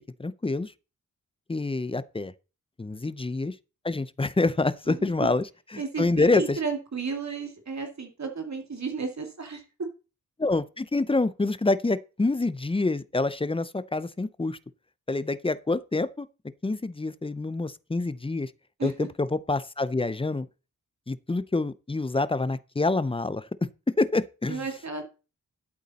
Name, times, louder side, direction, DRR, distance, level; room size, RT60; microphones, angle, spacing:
voice 1, 0.2-0.7 1.5-2.3 2.8-3.5 3.8-5.4 5.7-6.4 10.4-14.6 15.1-16.3 16.6-18.5 18.8-20.5 21.1-23.5 24.0-24.6, left 3 dB, 15° left, 0.5 m, -27 dB
voice 2, 5.8-9.6 18.8-18.9 24.5-25.0, right 4 dB, 55° right, 2.2 m, -33 dB
11.5 x 8.3 x 4.1 m
wide cardioid pair, 120°, 33 cm